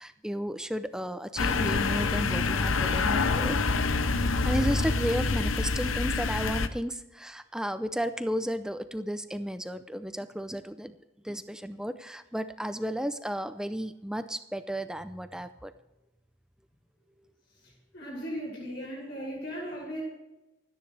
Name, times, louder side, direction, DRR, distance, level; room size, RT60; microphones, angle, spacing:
voice 1, 0.0-3.6 4.4-11.0 11.2-15.7, equal, 5° right, 11 dB, 0.5 m, -33 dB
sound 1, 1.4-6.7, left 4 dB, 85° left, 0.8 m, -26 dB
voice 2, 17.9-20.0, equal, 50° left, -5 dB, 6.8 m, -37 dB
28.5 x 10.0 x 3.4 m, 1.0 s
head